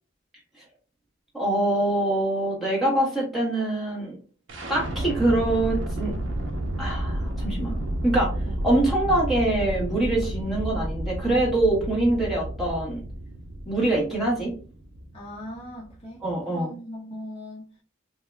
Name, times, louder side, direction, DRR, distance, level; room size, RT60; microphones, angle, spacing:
voice 1, 1.3-4.2 4.7-6.1 6.8-7.7 8.0-8.3 8.6-13.0 13.7-14.5 16.2-16.7, right 1 dB, ahead, -6 dB, 1.1 m, -24 dB
sound 1, 4.5-16.4, right 1 dB, 65° right, 0.5 m, -31 dB
voice 2, 15.1-16.2 16.5-17.7, left 1 dB, 30° left, -4 dB, 0.6 m, -39 dB
2.7 x 2.2 x 3.2 m, 0.40 s
head